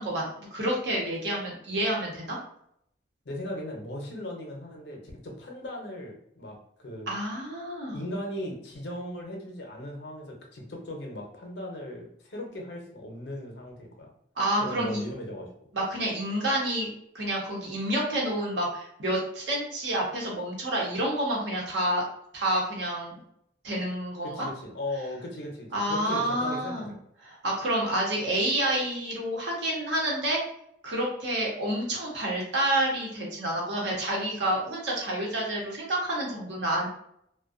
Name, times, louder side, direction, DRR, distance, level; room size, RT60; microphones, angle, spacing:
voice 1, 0.0-2.4 7.1-8.0 14.4-15.0 15.7-16.9 17.1-22.0 22.3-23.1 23.6-24.5 25.7-26.9 27.4-30.4 30.8-36.9, right 1 dB, 85° right, -3 dB, 0.9 m, -29 dB
voice 2, 3.2-7.1 7.9-14.1 14.6-15.5 24.2-26.9, left 1 dB, 75° left, 0 dB, 0.7 m, -38 dB
2.5 x 2.2 x 2.4 m, 0.71 s
head